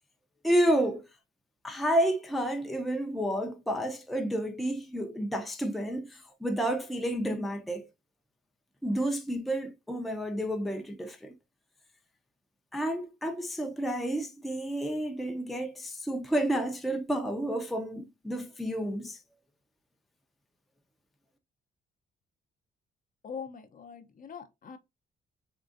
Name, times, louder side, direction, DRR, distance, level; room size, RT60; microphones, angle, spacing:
voice 1, 0.4-1.0 1.6-7.9 8.8-11.3 12.7-19.2, right 1 dB, ahead, 0.5 m, -30 dB
voice 2, 23.2-24.8, left 6 dB, 45° left, 0.6 m, -42 dB
3.7 x 2.4 x 2.4 m
cardioid pair, 90°, 20 cm